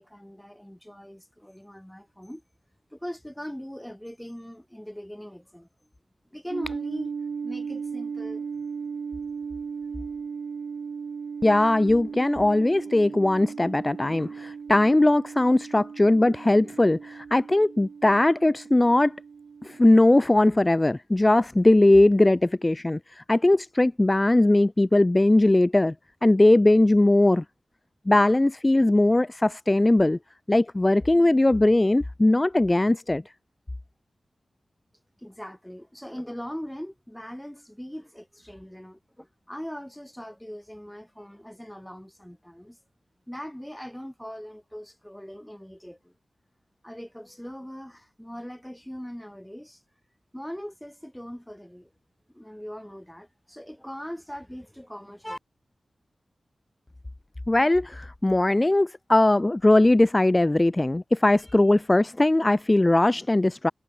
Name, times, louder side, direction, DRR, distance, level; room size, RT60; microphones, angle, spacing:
voice 1, 0.0-2.4 2.9-5.7 6.3-7.1 7.4-8.5 35.2-42.8 43.3-46.1 46.8-49.8 50.3-51.9 52.3-55.4, equal, 5° left, 2.0 m, -40 dB
sound 1, 6.5-20.0, right 6 dB, 90° right, 2.3 m, -37 dB
voice 2, 11.4-19.2 19.6-25.9 26.2-27.4 28.1-30.2 30.5-33.2 57.5-63.7, left 2 dB, 20° left, 0.5 m, -20 dB
wide cardioid pair, 100°, 0 cm